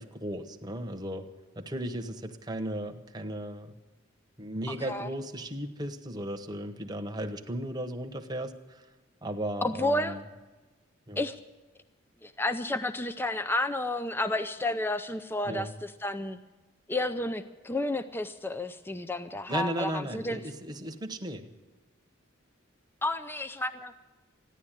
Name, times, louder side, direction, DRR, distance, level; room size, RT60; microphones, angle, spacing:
voice 1, 0.0-3.7 4.4-8.9 9.2-10.2 11.1-11.2 15.4-15.7 19.5-21.5, right 1 dB, 20° right, 6 dB, 1.0 m, -36 dB
voice 2, 9.6-10.2 11.2-11.4 12.2-16.4 16.9-20.4 23.0-23.9, left 2 dB, 10° left, 10 dB, 0.4 m, -31 dB
14.5 x 10.5 x 9.0 m, 1.2 s
head